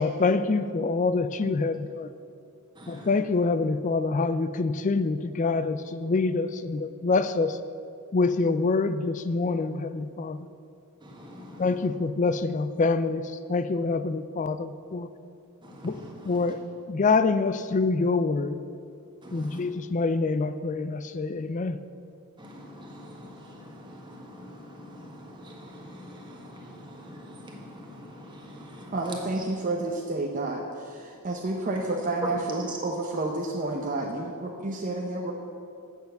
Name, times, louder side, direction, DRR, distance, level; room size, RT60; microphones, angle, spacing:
voice 1, 0.0-2.1 2.9-7.6 8.1-10.4 11.6-15.1 15.8-16.0 16.2-16.6 16.9-18.6 19.3-21.8, left 3 dB, 35° left, 13 dB, 0.4 m, -26 dB
voice 2, 2.8-3.2 11.0-11.9 15.6-16.6 19.2-19.6 22.4-29.5 32.2-32.8, equal, 20° right, -1 dB, 1.6 m, -42 dB
voice 3, 28.9-35.3, right 2 dB, 35° right, -1 dB, 0.7 m, -30 dB
8.2 x 7.0 x 7.8 m, 2.5 s
head